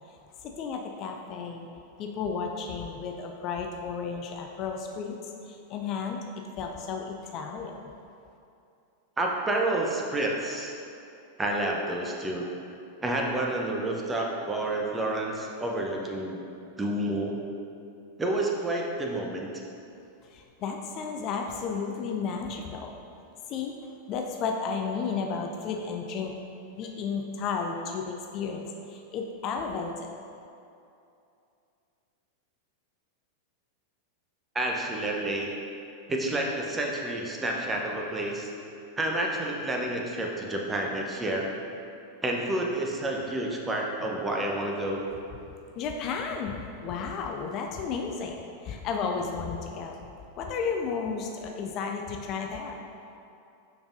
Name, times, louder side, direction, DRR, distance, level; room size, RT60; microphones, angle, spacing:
voice 1, 0.4-1.7 2.0-6.2 6.6-7.8 20.3-22.9 23.5-23.7 24.1-26.4 26.7-30.1 45.7-50.0 50.4-52.8, left 5 dB, 35° left, 2 dB, 0.4 m, -33 dB
voice 2, 9.2-10.7 11.4-12.5 13.0-16.4 16.8-17.4 18.2-19.6 34.5-35.5 36.1-38.5 39.0-41.5 42.2-45.0, right 1 dB, 15° right, 0 dB, 0.7 m, -29 dB
6.8 x 5.4 x 2.6 m, 2.6 s
figure-of-eight pair, 90°, 0 cm